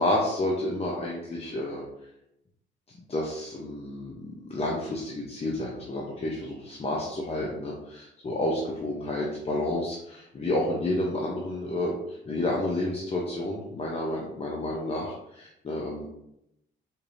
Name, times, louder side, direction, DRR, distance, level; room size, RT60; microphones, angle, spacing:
voice 1, 0.0-1.8 3.1-16.1, left 1 dB, 30° left, -2 dB, 0.7 m, -30 dB
4.4 x 3.3 x 2.6 m, 0.81 s
cardioid pair, 90°, 20 cm